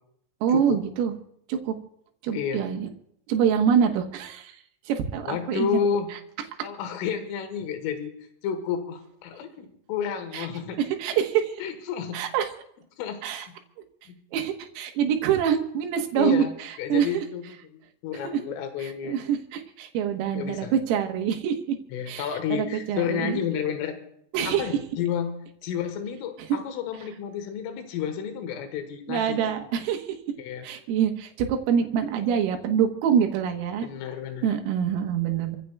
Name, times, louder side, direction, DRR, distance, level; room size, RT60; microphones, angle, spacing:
voice 1, 0.4-1.1 1.5-1.8 2.2-2.9 3.3-4.6 4.9-5.8 10.3-10.5 10.8-11.6 12.1-12.5 13.2-13.5 14.3-17.2 18.2-18.4 18.8-21.6 22.1-23.4 24.3-24.7 26.5-26.6 29.1-30.2 30.6-33.9 34.4-35.6, right 8 dB, 90° right, 4 dB, 3.9 m, -25 dB
voice 2, 2.3-2.6 5.3-6.1 6.6-8.1 8.4-10.8 11.6-12.2 13.0-13.2 13.5-13.6 14.1-14.2 16.2-16.5 16.8-19.2 20.3-20.7 21.9-24.0 24.5-25.3 25.6-29.4 30.4-30.7 33.8-34.5, left 8 dB, 85° left, 6 dB, 3.9 m, -31 dB
28.5 x 15.5 x 2.3 m, 0.72 s
omnidirectional pair, 5.7 m